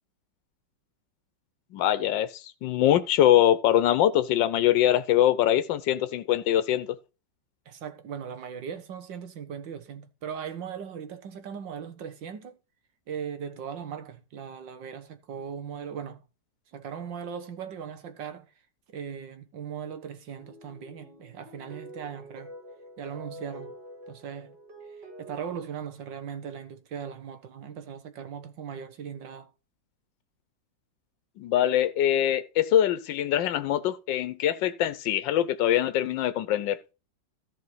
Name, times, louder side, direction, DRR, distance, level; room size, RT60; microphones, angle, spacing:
voice 1, 1.7-7.0 31.4-36.8, left 11 dB, 85° left, 1.4 m, -23 dB
voice 2, 7.7-12.6 13.1-16.2 16.7-18.5 18.9-22.5 23.0-23.8 24.1-24.6 25.2-29.5, right 7 dB, 85° right, 1.9 m, -38 dB
sound 1, 20.3-25.3, right 1 dB, 70° right, 3.4 m, -46 dB
14.0 x 4.6 x 5.5 m
omnidirectional pair, 1.9 m